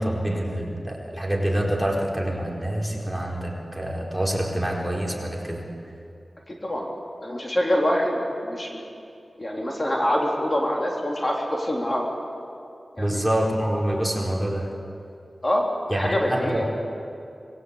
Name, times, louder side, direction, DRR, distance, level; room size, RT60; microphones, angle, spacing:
voice 1, 0.0-5.6 13.0-14.7 15.9-16.7, right 1 dB, 5° right, -2 dB, 4.6 m, -26 dB
voice 2, 6.5-6.9 7.2-8.8 9.4-12.1 12.9-13.2 15.4-15.7 15.9-16.7, left 1 dB, 35° left, -1 dB, 4.0 m, -25 dB
26.0 x 22.0 x 8.3 m, 2.6 s
wide cardioid pair, 80°, 0 cm